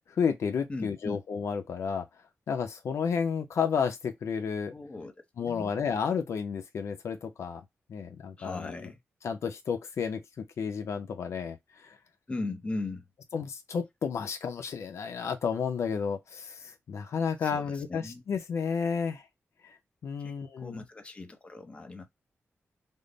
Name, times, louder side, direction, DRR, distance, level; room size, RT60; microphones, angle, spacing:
voice 1, 0.1-2.1 2.5-4.7 5.4-7.6 7.9-8.7 9.2-12.0 13.3-19.2 19.6-19.8 20.0-20.8, left 6 dB, 80° left, 0.5 m, -32 dB
voice 2, 0.7-1.2 4.7-5.7 8.4-9.0 12.3-13.0 17.4-18.2 20.2-22.1, left 2 dB, 25° left, 0.7 m, -38 dB
3.6 x 2.0 x 3.8 m
wide cardioid pair, 150°, 5 cm